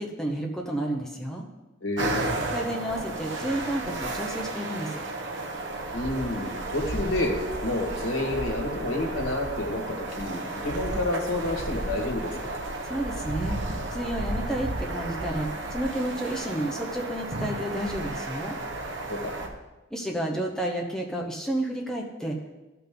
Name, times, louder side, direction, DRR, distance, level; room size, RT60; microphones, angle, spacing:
voice 1, 0.0-1.4 2.5-5.0 12.8-18.6 19.9-22.6, right 1 dB, 5° left, -1 dB, 0.8 m, -31 dB
voice 2, 1.8-2.3 5.9-7.3 7.6-12.6 19.1-19.3, left 1 dB, 85° left, 0 dB, 1.9 m, -29 dB
sound 1, 2.0-19.5, right 2 dB, 60° right, 1.1 m, -33 dB
14.5 x 5.7 x 3.8 m, 1.1 s
head